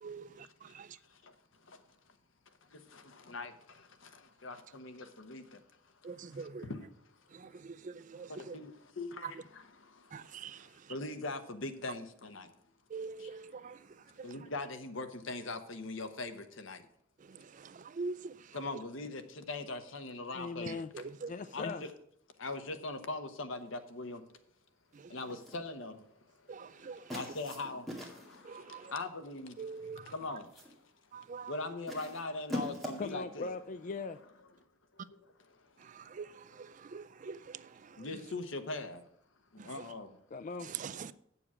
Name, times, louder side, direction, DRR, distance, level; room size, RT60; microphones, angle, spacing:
voice 1, 0.0-1.0 6.0-6.7 7.3-8.6 9.2-9.3 10.1-10.9 12.9-14.4 17.2-18.6 20.7-21.3 24.9-25.2 26.5-27.2 28.4-28.9 29.6-30.4 31.1-31.5 35.8-38.2 39.6-39.9 40.6-41.1, right 5 dB, 40° right, 0.4 m, -45 dB
voice 2, 1.0-1.3 1.6-1.8 2.7-5.6 6.0-6.9 8.3-12.5 13.2-13.3 14.2-16.8 18.5-21.1 21.5-21.9 22.4-24.2 25.1-29.6 30.1-30.8 31.5-33.5 35.1-35.6 38.0-39.0 39.5-40.2, left 3 dB, 75° left, 1.0 m, -42 dB
voice 3, 20.3-20.9 21.3-21.8 33.0-34.2 40.3-40.7, left 4 dB, 40° left, 0.4 m, -39 dB
sound 1, 25.3-25.7 27.1-28.4 29.5-29.8 30.2-30.8 31.9-33.2, equal, ahead, 2.1 m, -42 dB
8.6 x 6.9 x 6.1 m
head